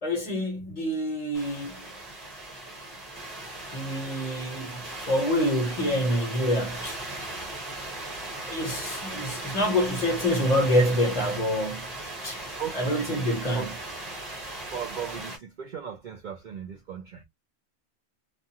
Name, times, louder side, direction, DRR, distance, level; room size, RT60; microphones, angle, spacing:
voice 1, 0.0-1.9 3.7-7.0 8.4-11.9 12.2-12.4 12.7-13.7, equal, 35° left, 0.9 m, -26 dB
sound 1, 1.3-15.4, right 2 dB, 35° right, 1.1 m, -38 dB
voice 2, 9.1-9.6 12.5-13.7 14.7-17.2, right 7 dB, 60° right, 0.5 m, -37 dB
2.4 x 2.4 x 2.7 m
omnidirectional pair, 1.2 m